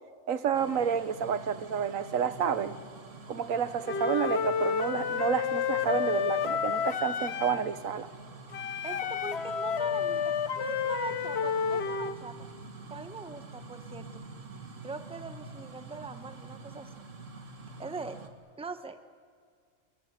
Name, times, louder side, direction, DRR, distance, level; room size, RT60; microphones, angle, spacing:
voice 1, 0.3-2.7 3.3-8.1, right 7 dB, 80° right, 13 dB, 1.4 m, -30 dB
sound 1, 0.5-18.3, right 3 dB, 65° right, 2.0 m, -47 dB
Wind instrument woodwind instrument, 3.9-7.7 8.5-12.2, left 7 dB, 55° left, 1.1 m, -30 dB
voice 2, 8.8-12.3 12.9-14.1 14.8-16.9 17.8-18.2 18.6-19.0, right 3 dB, 5° right, 9 dB, 0.8 m, -41 dB
26.5 x 23.5 x 8.1 m, 2.1 s
omnidirectional pair, 1.4 m